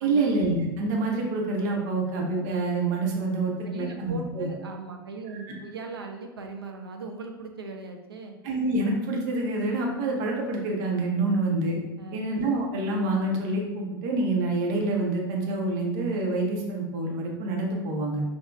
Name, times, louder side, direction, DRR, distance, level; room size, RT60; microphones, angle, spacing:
voice 1, 0.0-4.5 5.5-5.6 8.4-11.8 12.1-18.2, right 2 dB, 50° right, 0 dB, 0.9 m, -27 dB
voice 2, 3.6-8.4 11.3-11.4 12.0-12.3, right 4 dB, 80° right, 3 dB, 0.4 m, -39 dB
5.6 x 2.3 x 2.4 m, 1.1 s
figure-of-eight pair, 85°, 12 cm